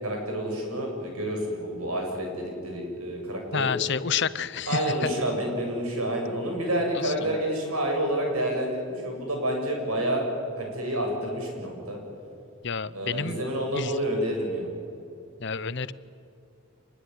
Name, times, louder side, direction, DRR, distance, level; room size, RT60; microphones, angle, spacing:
voice 1, 0.0-3.7 4.7-10.2 10.6-12.0 12.9-14.7, right 1 dB, 85° right, 1 dB, 7.6 m, -29 dB
voice 2, 3.5-4.8 7.0-7.3 12.6-13.4 13.7-13.9 15.4-15.9, left 6 dB, 55° left, 16 dB, 0.8 m, -29 dB
26.0 x 21.0 x 9.7 m, 2.5 s
head